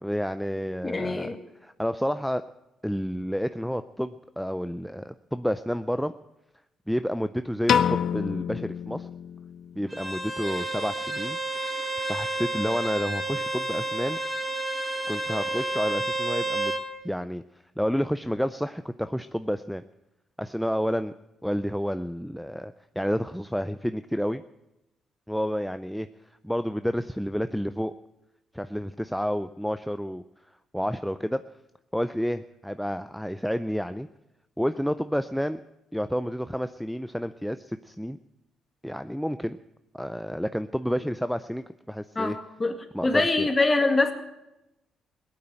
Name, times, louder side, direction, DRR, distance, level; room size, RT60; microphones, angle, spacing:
voice 1, 0.0-1.3 1.6-2.4 2.8-6.1 6.9-9.1 9.7-11.4 12.0-14.2 15.1-16.7 17.0-17.4 17.8-19.8 20.4-21.1 21.4-24.4 25.3-26.1 26.4-27.9 28.5-30.2 30.7-31.4 31.9-34.1 34.6-35.6 35.9-38.2 38.8-39.6 39.9-42.4 42.9-43.5, equal, ahead, 10 dB, 0.5 m, -30 dB
voice 2, 0.8-1.4 42.2-42.7 43.0-44.1, left 3 dB, 25° left, 6 dB, 2.0 m, -24 dB
Piano, 7.7-9.9, left 8 dB, 65° left, 0.6 m, -27 dB
Bowed string instrument, 9.9-16.9, right 2 dB, 20° right, 2.5 m, -30 dB
17.0 x 8.8 x 8.9 m, 0.92 s
cardioid pair, 90°, 0 cm